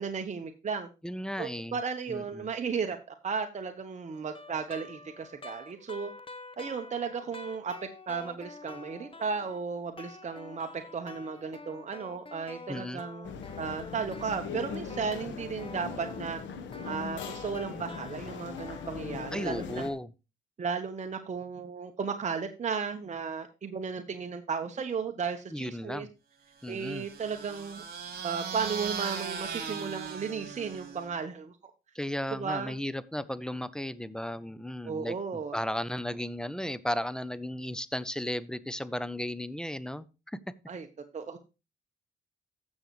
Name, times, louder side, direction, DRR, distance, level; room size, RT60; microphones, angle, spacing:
voice 1, 0.0-0.9 1.4-6.1 6.6-16.4 16.9-19.8 20.6-26.1 26.7-27.8 28.2-31.7 32.3-32.7 34.8-35.6 40.7-40.9 41.1-41.4, right 5 dB, 40° right, 5 dB, 1.0 m, -35 dB
voice 2, 1.0-1.8 2.1-2.5 12.7-13.0 19.3-20.1 25.5-26.1 26.6-27.1 31.9-40.4, left 1 dB, 5° left, 17 dB, 0.6 m, -35 dB
sound 1, 4.1-9.6 10.0-18.9, left 3 dB, 30° left, 1.0 m, -47 dB
sound 2, 13.2-19.9, left 6 dB, 85° left, 1.3 m, -40 dB
sound 3, 26.6-31.2, right 6 dB, 55° right, 2.8 m, -38 dB
14.5 x 6.4 x 3.1 m, 0.30 s
cardioid pair, 80°, 19 cm